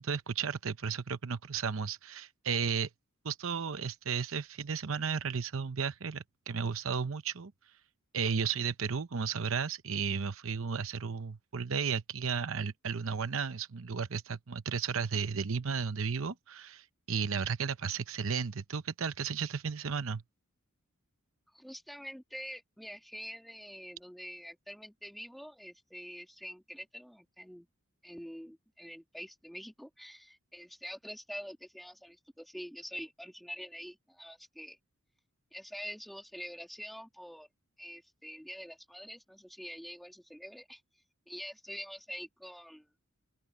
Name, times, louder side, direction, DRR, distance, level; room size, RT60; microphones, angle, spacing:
voice 1, 0.0-2.9 3.2-7.5 8.1-20.2, right 6 dB, 65° right, 0.8 m, -34 dB
voice 2, 21.5-27.7 28.0-34.8 35.5-37.5 37.8-40.8 41.3-42.9, equal, ahead, 2.4 m, -46 dB
open air
head